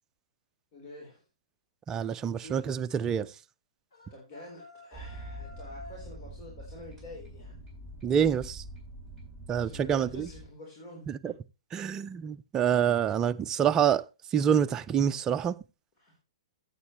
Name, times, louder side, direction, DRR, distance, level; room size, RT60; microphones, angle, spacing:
voice 1, 0.7-1.2 2.4-3.0 4.1-7.6 9.5-11.3 16.0-16.1, left 1 dB, 40° left, 3.8 m, -48 dB
voice 2, 1.9-3.3 8.0-8.6 9.5-10.3 11.1-11.3 11.7-14.0 14.3-15.5, right 8 dB, 20° right, 0.5 m, -27 dB
sound 1, 3.9-6.1, left 2 dB, 70° left, 5.7 m, -50 dB
sound 2, 4.9-10.5, right 1 dB, 5° left, 7.0 m, -45 dB
14.0 x 8.2 x 3.1 m
hypercardioid pair, 125°, 3 cm